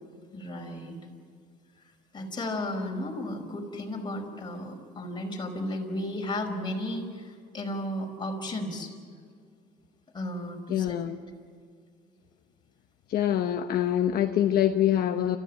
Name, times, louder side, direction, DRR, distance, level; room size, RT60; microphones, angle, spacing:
voice 1, 0.3-1.0 2.1-8.9 10.1-10.9, left 1 dB, 25° left, 1 dB, 5.1 m, -34 dB
voice 2, 10.7-11.2 13.1-15.4, left 11 dB, 65° left, 5 dB, 1.0 m, -25 dB
29.5 x 15.0 x 9.4 m, 2.1 s
cardioid pair, 110°, 17 cm